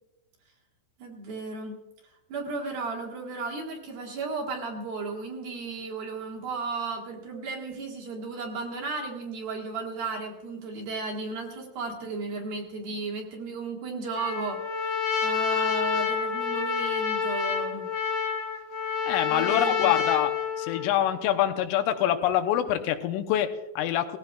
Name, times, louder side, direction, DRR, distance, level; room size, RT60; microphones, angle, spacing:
voice 1, 1.0-1.8 2.3-17.9 19.3-20.0, right 3 dB, 60° right, -1 dB, 3.1 m, -34 dB
Trumpet, 14.1-20.9, left 6 dB, 65° left, 1.7 m, -28 dB
voice 2, 19.1-20.3 20.6-24.2, left 11 dB, 90° left, 7 dB, 3.4 m, -25 dB
19.0 x 15.5 x 2.4 m, 1.0 s
omnidirectional pair, 5.6 m